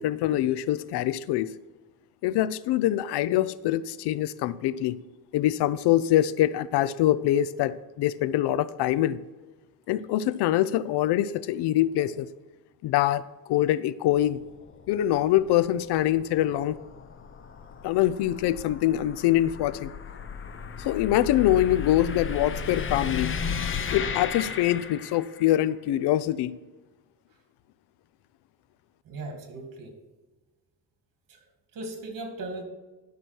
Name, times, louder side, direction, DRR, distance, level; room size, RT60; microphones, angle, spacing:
voice 1, 0.0-1.5 2.2-5.0 5.3-9.2 9.9-12.3 12.8-13.2 13.5-14.4 14.9-16.8 17.8-19.9 20.8-23.3 23.9-26.6, left 13 dB, 90° left, 16 dB, 0.6 m, -24 dB
sound 1, 14.1-25.5, left 6 dB, 30° left, 0.7 m, -35 dB
voice 2, 29.1-29.9 31.3-31.4 31.7-32.6, right 2 dB, 55° right, 4 dB, 2.4 m, -37 dB
12.0 x 6.1 x 4.5 m, 1.2 s
cardioid pair, 140°, 39 cm